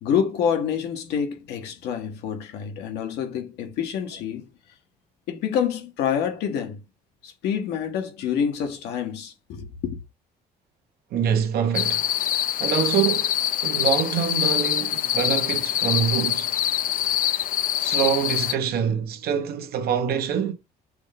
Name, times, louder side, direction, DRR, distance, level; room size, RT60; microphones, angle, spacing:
voice 1, 0.0-4.4 5.3-6.8 7.2-10.0, left 8 dB, 85° left, 1.2 m, -27 dB
voice 2, 11.1-12.1 12.3-16.6 17.8-20.5, right 8 dB, 65° right, 0.9 m, -25 dB
sound 1, 11.7-18.6, left 11 dB, 55° left, 0.4 m, -24 dB
6.2 x 2.1 x 3.4 m
cardioid pair, 110°, 17 cm